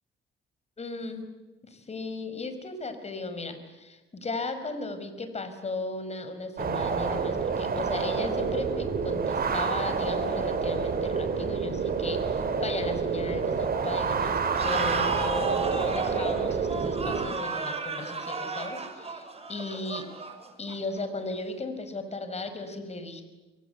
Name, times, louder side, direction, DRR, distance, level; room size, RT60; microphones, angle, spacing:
voice 1, 0.8-1.3 1.6-20.1 20.6-23.2, left 3 dB, 35° left, 9 dB, 5.5 m, -36 dB
sound 1, 6.6-17.3, right 5 dB, 50° right, 5.0 m, -28 dB
sound 2, 14.5-21.0, right 4 dB, 30° right, 6.3 m, -33 dB
28.5 x 24.0 x 8.2 m, 1.1 s
cardioid pair, 90°, 20 cm